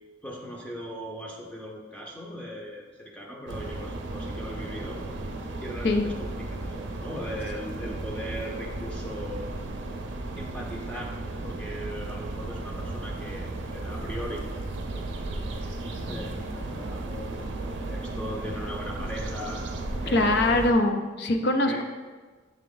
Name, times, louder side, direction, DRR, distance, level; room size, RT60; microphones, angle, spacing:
voice 1, 0.2-5.0 5.6-9.5 10.3-11.2 11.4-14.5 14.9-19.6 20.0-20.7 21.6-21.8, equal, 5° left, -2 dB, 0.6 m, -39 dB
sound 1, 3.5-20.7, right 2 dB, 70° right, 0.6 m, -35 dB
voice 2, 20.1-21.8, left 2 dB, 60° left, 5 dB, 0.5 m, -23 dB
7.2 x 3.4 x 3.8 m, 1.4 s
head